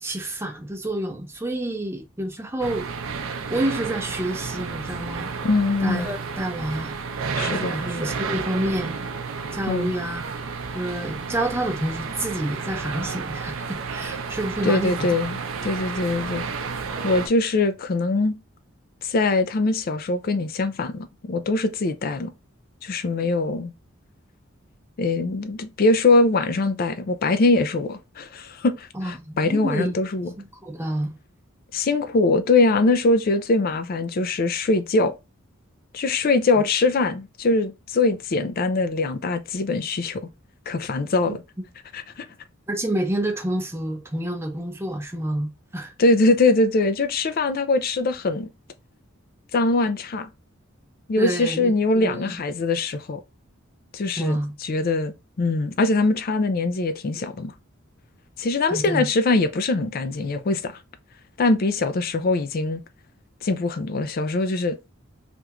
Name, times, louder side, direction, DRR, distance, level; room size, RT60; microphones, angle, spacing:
voice 1, 0.0-2.9 3.5-5.3 5.8-6.9 7.5-9.0 9.5-10.3 10.7-15.0 28.9-30.0 30.6-31.2 36.6-36.7 42.7-45.9 51.2-52.4 54.2-54.5 58.7-59.0, right 1 dB, 10° right, 0.7 m, -28 dB
sound 1, 2.6-17.3, right 5 dB, 75° right, 0.5 m, -31 dB
voice 2, 5.4-6.1 7.4-7.7 9.7-9.9 14.6-16.4 17.0-18.3 19.0-22.3 22.8-23.7 25.0-30.3 31.7-35.1 35.9-40.3 40.7-41.4 41.9-42.3 46.0-48.5 49.5-50.3 51.1-53.2 53.9-57.5 58.4-60.7 61.4-62.8 63.4-64.8, left 3 dB, 45° left, 0.4 m, -22 dB
3.5 x 2.4 x 2.9 m
head